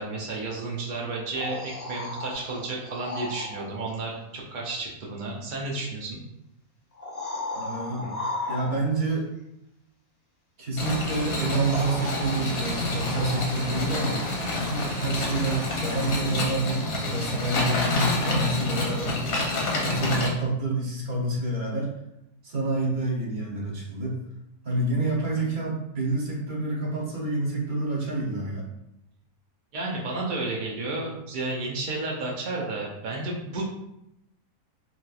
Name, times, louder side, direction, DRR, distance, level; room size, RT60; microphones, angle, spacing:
voice 1, 0.0-6.2 25.4-25.5 29.7-33.6, right 2 dB, 75° right, -3 dB, 0.4 m, -32 dB
sound 1, 1.1-3.7 5.5-5.6 6.9-9.1 11.0-11.1 11.7-13.8 16.9-17.0, left 2 dB, 35° left, 0.8 m, -35 dB
voice 2, 7.5-8.1 8.5-9.3 10.6-14.2 14.5-19.2 19.8-21.9 22.4-24.2 24.6-28.7, right 2 dB, 40° right, -4 dB, 0.8 m, -28 dB
sound 2, 10.8-20.3, left 2 dB, 60° left, 0.8 m, -28 dB
sound 3, 10.8-16.2, equal, 5° left, 0.5 m, -38 dB
3.0 x 2.9 x 2.3 m, 0.84 s
omnidirectional pair, 1.5 m